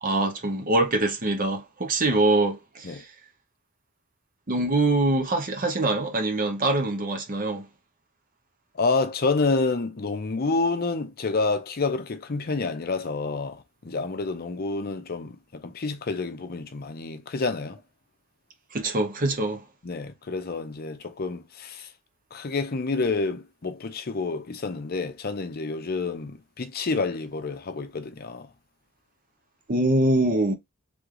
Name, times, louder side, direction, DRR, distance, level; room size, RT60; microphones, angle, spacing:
voice 1, 0.0-3.1 4.5-7.7 18.7-19.6 29.7-30.6, right 2 dB, 40° right, 0.8 m, -24 dB
voice 2, 8.7-17.8 19.8-21.9 22.3-28.5, left 3 dB, 45° left, 0.6 m, -28 dB
3.5 x 3.3 x 3.7 m
head